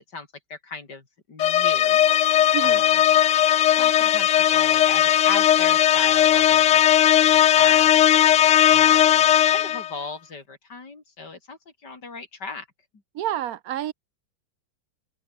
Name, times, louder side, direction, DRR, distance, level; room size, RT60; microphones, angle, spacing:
voice 1, 0.0-2.9 3.7-6.8 7.1-12.7, left 4 dB, 55° left, 4.1 m, -37 dB
sound 1, 1.4-9.9, left 11 dB, 80° left, 0.6 m, -18 dB
voice 2, 13.1-13.9, right 12 dB, 65° right, 0.9 m, -28 dB
omnidirectional pair, 2.2 m